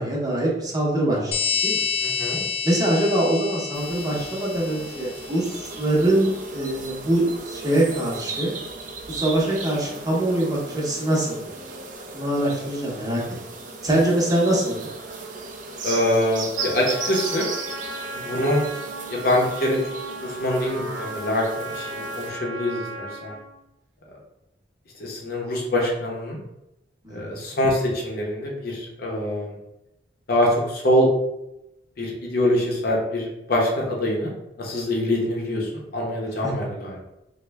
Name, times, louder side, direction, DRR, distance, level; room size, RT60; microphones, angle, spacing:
voice 1, 0.0-1.3 1.6-1.8 2.6-5.5 5.8-8.5 9.1-11.4 12.1-13.2 13.8-14.8 27.0-27.4 36.4-36.5, right 1 dB, 20° right, -4 dB, 0.8 m, -23 dB
sound 1, 1.3-5.6, left 5 dB, 30° left, 0.3 m, -28 dB
voice 2, 2.0-2.4 15.8-17.5 18.1-18.6 19.1-19.8 20.2-23.3 25.0-26.4 27.1-29.5 30.3-31.1 32.0-34.3 34.6-37.0, left 1 dB, 55° left, -2 dB, 0.7 m, -24 dB
sound 2, 3.7-22.3, right 4 dB, 45° right, 0.5 m, -36 dB
Trumpet, 16.6-23.5, right 1 dB, 85° right, 0.6 m, -36 dB
3.1 x 2.1 x 3.3 m, 0.89 s
head